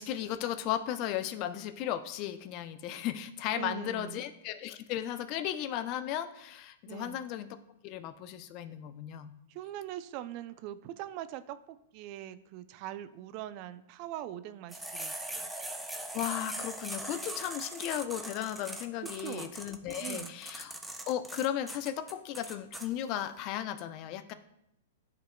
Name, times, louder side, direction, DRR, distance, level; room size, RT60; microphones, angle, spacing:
voice 1, 0.0-7.5 7.8-9.3 16.1-20.7 21.1-24.3, left 11 dB, 45° left, 12 dB, 0.5 m, -35 dB
voice 2, 3.5-4.3 6.9-7.2 9.5-15.5 19.0-19.5 20.0-20.4, right 12 dB, 45° right, 13 dB, 0.4 m, -42 dB
sound 1, 14.7-22.9, right 1 dB, 5° right, 0.6 m, -40 dB
11.5 x 3.8 x 2.2 m, 0.80 s
hypercardioid pair, 115°, 0 cm